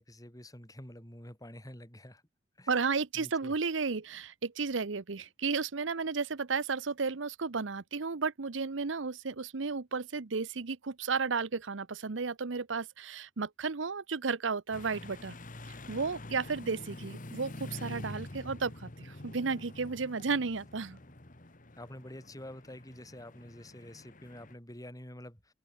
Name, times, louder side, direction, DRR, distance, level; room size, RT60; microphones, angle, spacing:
voice 1, 0.0-2.2 2.6-2.7 3.1-3.5 21.0-21.1 21.8-25.5, left 1 dB, 20° left, 7.3 m, -48 dB
voice 2, 2.7-15.4 15.7-21.0, right 4 dB, 80° right, 0.9 m, -33 dB
sound 1, 14.7-24.5, left 1 dB, 45° left, 2.1 m, -47 dB
open air
head